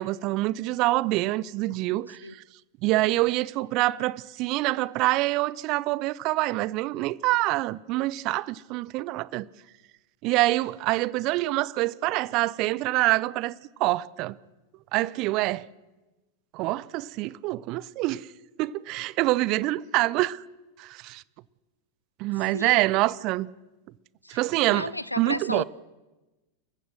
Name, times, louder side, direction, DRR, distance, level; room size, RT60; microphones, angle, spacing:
voice 1, 0.0-2.2 2.8-9.5 10.2-14.4 14.9-15.6 16.5-18.3 18.6-20.4 20.8-21.2 22.2-23.5 24.3-24.9 25.2-25.6, right 18 dB, 40° right, 0.6 m, -26 dB
voice 2, 24.7-25.6, left 1 dB, 85° left, 0.6 m, -33 dB
27.5 x 15.0 x 6.4 m
figure-of-eight pair, 90°, 0 cm